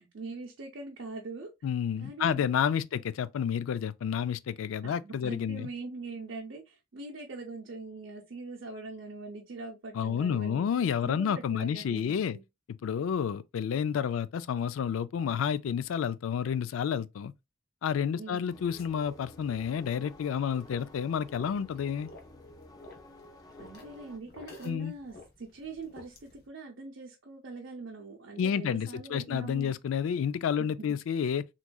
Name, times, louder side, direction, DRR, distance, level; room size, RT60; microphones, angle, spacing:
voice 1, 0.0-1.5 2.0-2.5 4.8-10.7 11.0-12.4 18.2-18.5 23.6-29.7 30.6-30.7, right 3 dB, 65° right, 0.7 m, -42 dB
voice 2, 1.6-5.7 9.9-12.4 12.7-17.3 17.8-22.1 24.6-24.9 28.4-31.5, left 7 dB, 80° left, 0.3 m, -30 dB
sound 1, 18.5-24.2, left 1 dB, 20° left, 0.5 m, -52 dB
sound 2, 18.8-26.5, left 2 dB, 50° left, 1.0 m, -54 dB
3.5 x 3.1 x 2.2 m
head